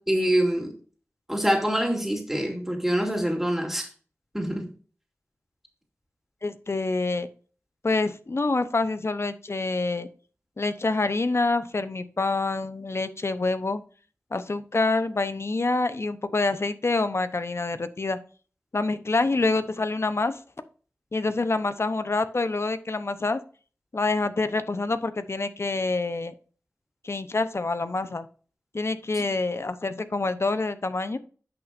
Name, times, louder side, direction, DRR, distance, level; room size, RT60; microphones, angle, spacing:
voice 1, 0.1-0.7 1.3-3.9 4.3-4.7 29.1-29.2, right 1 dB, 5° right, 1 dB, 2.7 m, -25 dB
voice 2, 6.4-7.3 7.8-10.1 10.6-13.8 14.3-18.2 18.7-20.4 21.1-23.4 23.9-26.3 27.0-28.3 28.7-31.2, left 3 dB, 55° left, 12 dB, 0.8 m, -26 dB
9.8 x 6.0 x 2.6 m, 0.39 s
cardioid pair, 45°, 5 cm